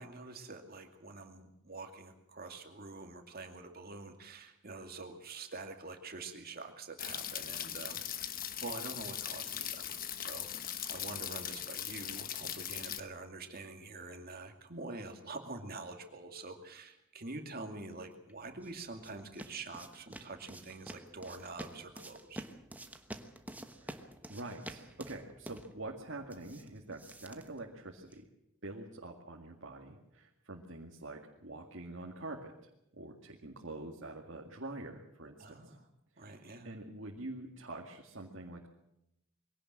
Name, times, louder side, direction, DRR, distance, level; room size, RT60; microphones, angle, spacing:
voice 1, 0.0-8.3 8.6-9.9 10.2-22.4 35.4-35.8 36.2-36.7, right 3 dB, 45° right, 5 dB, 2.4 m, -46 dB
sound 1, 7.0-13.0, left 10 dB, 45° left, 1.2 m, -40 dB
sound 2, 18.3-28.3, right 1 dB, 10° right, 1.1 m, -49 dB
voice 2, 23.8-28.2 28.6-32.5 32.9-35.8 36.2-38.7, right 2 dB, 60° right, 0 dB, 2.1 m, -46 dB
22.5 x 17.5 x 7.6 m, 0.83 s
head